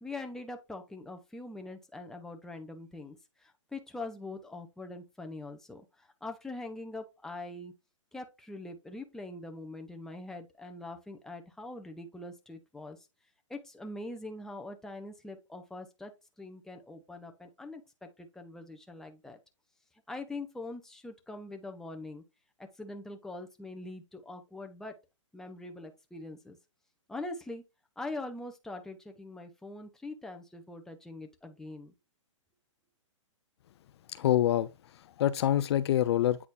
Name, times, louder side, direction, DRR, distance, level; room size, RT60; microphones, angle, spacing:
voice 1, 0.0-7.7 8.1-13.0 13.5-16.1 16.4-19.4 20.1-22.2 22.6-24.9 25.3-26.6 27.1-27.6 28.0-31.9, left 2 dB, 5° left, 0.9 m, -43 dB
voice 2, 34.1-36.5, left 12 dB, 55° left, 0.5 m, -27 dB
8.4 x 4.2 x 2.7 m
hypercardioid pair, 140°, 17 cm